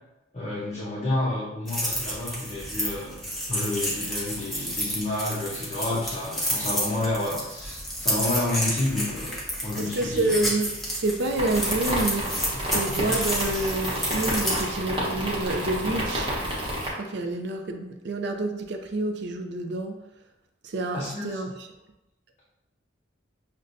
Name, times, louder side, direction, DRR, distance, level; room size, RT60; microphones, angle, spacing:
voice 1, 0.3-3.2 3.5-10.4 20.9-21.4, left 2 dB, 35° left, -7 dB, 0.8 m, -30 dB
sound 1, 1.7-14.6, equal, ahead, 0.7 m, -30 dB
voice 2, 9.8-16.3 16.9-20.0 20.6-21.7, right 2 dB, 60° right, 5 dB, 0.5 m, -28 dB
sound 2, 11.4-16.9, equal, 25° right, 0.9 m, -30 dB
6.3 x 2.2 x 2.6 m, 0.93 s
head